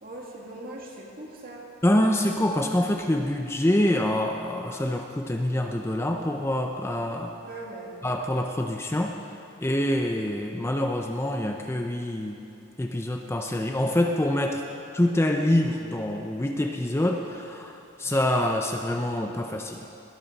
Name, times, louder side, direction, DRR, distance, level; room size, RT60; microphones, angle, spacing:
voice 1, 0.0-1.7 7.5-8.0, right 2 dB, 45° right, -2 dB, 2.4 m, -40 dB
voice 2, 1.8-7.3 8.0-9.1 9.6-12.4 12.8-14.6 14.9-19.8, left 1 dB, 15° left, 3 dB, 0.6 m, -26 dB
20.5 x 12.5 x 4.1 m, 2.6 s
head